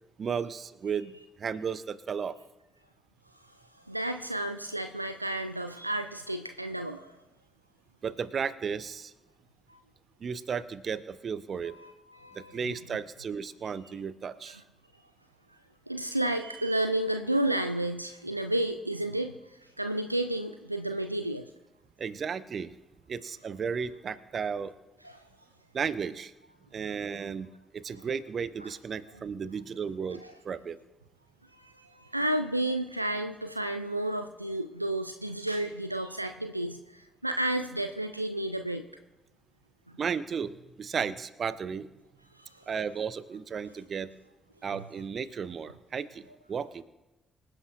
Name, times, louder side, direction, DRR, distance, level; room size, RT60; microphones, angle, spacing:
voice 1, 0.2-2.4 8.0-9.1 10.2-11.8 12.3-14.6 22.0-22.7 23.1-24.7 25.7-26.3 26.7-30.8 40.0-41.9 42.7-44.1 44.6-46.8, right 6 dB, 45° right, 16 dB, 0.6 m, -34 dB
voice 2, 3.4-7.2 9.7-9.8 11.8-12.7 15.9-21.5 25.0-25.2 28.6-28.7 30.2-30.3 31.5-38.8 39.9-40.0 42.3-42.7 44.7-44.8, right 1 dB, 90° right, 8 dB, 0.3 m, -32 dB
25.0 x 10.0 x 2.4 m, 1.0 s
figure-of-eight pair, 40°, 0 cm